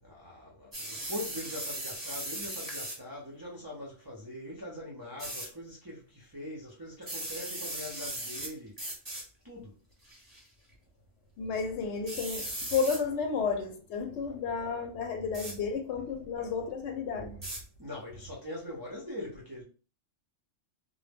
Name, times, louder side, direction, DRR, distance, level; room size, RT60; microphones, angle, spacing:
voice 1, 0.0-8.8 9.4-9.8 17.8-19.6, left 1 dB, 35° right, 0.3 m, -42 dB
sound 1, 0.7-3.0 5.2-5.5 7.0-8.5 8.8-9.2 10.0-10.4 12.1-13.0 15.3-15.6 17.4-17.6, right 1 dB, 20° right, 0.8 m, -38 dB
voice 2, 11.4-17.4, left 5 dB, 70° left, 0.8 m, -32 dB
2.1 x 2.0 x 3.3 m
omnidirectional pair, 1.3 m